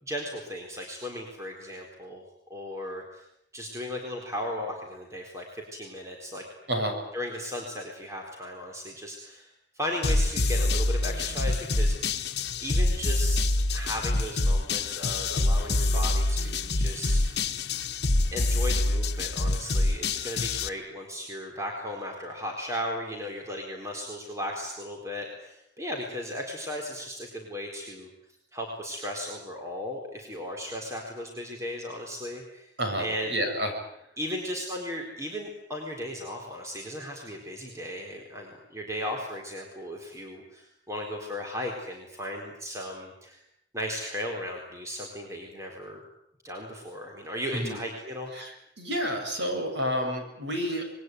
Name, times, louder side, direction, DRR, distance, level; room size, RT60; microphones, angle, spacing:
voice 1, 0.0-2.2 2.5-3.2 3.5-6.4 7.1-12.2 12.6-17.5 18.3-28.1 28.5-32.7 33.0-33.3 34.2-43.4 43.7-46.0 46.4-48.3, equal, 15° right, 1 dB, 4.2 m, -36 dB
sound 1, 10.0-20.7, left 2 dB, 65° left, 1.4 m, -26 dB
voice 2, 32.8-33.7 47.5-47.8 48.4-48.5 48.8-50.9, equal, 70° right, 4 dB, 7.8 m, -29 dB
26.5 x 22.0 x 9.4 m, 0.77 s
head